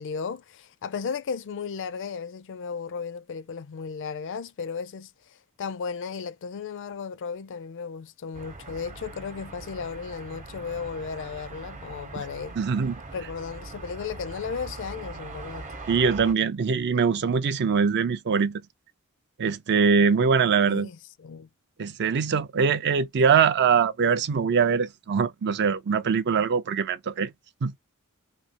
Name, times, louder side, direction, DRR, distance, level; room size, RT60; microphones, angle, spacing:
voice 1, 0.0-12.6 13.1-15.7 20.7-21.5, left 6 dB, 55° left, 0.4 m, -35 dB
sound 1, 8.3-16.3, right 3 dB, 35° right, 0.8 m, -41 dB
voice 2, 12.6-13.0 15.9-18.6 19.4-20.9 21.8-27.3 27.6-27.8, right 6 dB, 50° right, 0.4 m, -23 dB
3.1 x 2.7 x 2.8 m
head